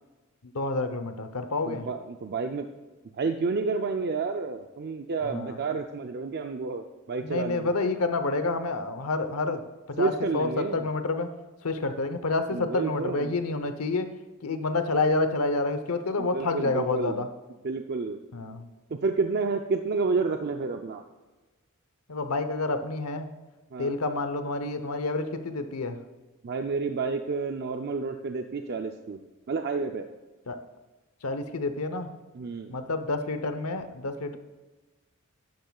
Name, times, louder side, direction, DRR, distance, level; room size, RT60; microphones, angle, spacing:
voice 1, 0.4-1.9 5.3-5.6 7.2-9.6 9.9-11.3 11.6-14.1 14.4-17.3 18.3-18.7 22.1-23.3 23.8-26.0 30.5-30.6 31.2-32.1 32.7-34.4, left 3 dB, 85° left, 9 dB, 0.9 m, -28 dB
voice 2, 1.7-2.7 3.1-7.8 10.0-10.9 12.5-13.3 16.2-17.3 17.6-18.2 18.9-21.0 23.7-24.0 26.4-30.1 32.3-32.8, right 4 dB, 50° right, 5 dB, 0.5 m, -30 dB
12.0 x 10.5 x 2.4 m, 1.2 s
head